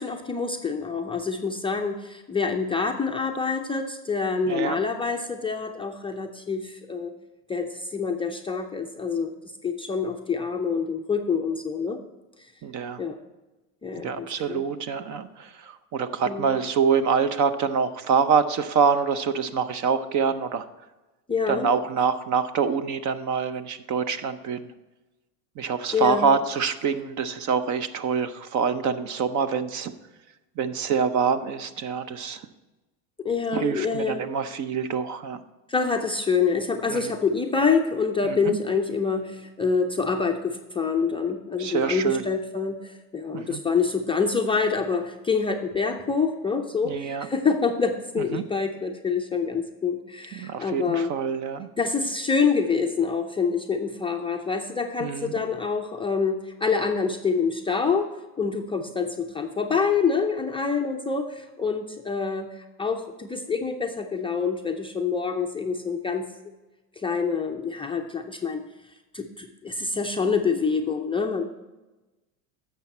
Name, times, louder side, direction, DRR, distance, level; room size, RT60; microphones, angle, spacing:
voice 1, 0.0-7.1 7.5-9.3 9.6-12.0 13.0-13.2 13.8-14.7 16.2-16.5 21.3-21.7 25.9-26.3 33.2-34.2 35.7-51.1 51.8-58.1 58.4-66.3 67.0-68.6 69.1-71.4, left 5 dB, 10° left, 2 dB, 0.5 m, -26 dB
voice 2, 4.5-4.8 12.6-13.0 14.0-20.7 21.5-24.7 25.6-29.9 30.6-32.4 33.5-35.4 36.9-37.0 38.2-38.6 41.6-42.2 43.3-43.6 46.8-47.3 48.3-48.4 50.3-51.7 55.0-55.3, right 6 dB, 40° right, 12 dB, 0.7 m, -25 dB
11.0 x 7.2 x 4.3 m, 1.1 s
supercardioid pair, 105°, 48 cm